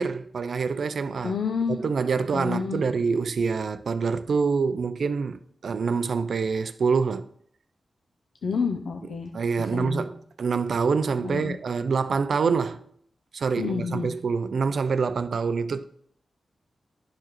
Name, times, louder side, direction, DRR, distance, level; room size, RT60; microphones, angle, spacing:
voice 1, 0.0-1.4 1.8-7.3 9.3-12.8 13.3-15.8, right 5 dB, 65° right, 0.4 m, -26 dB
voice 2, 1.2-1.8 2.3-2.9 8.4-9.3 9.6-10.1 11.2-11.6 13.6-14.1, left 5 dB, 80° left, 0.5 m, -29 dB
11.0 x 4.7 x 3.0 m
wide cardioid pair, 125°, 0 cm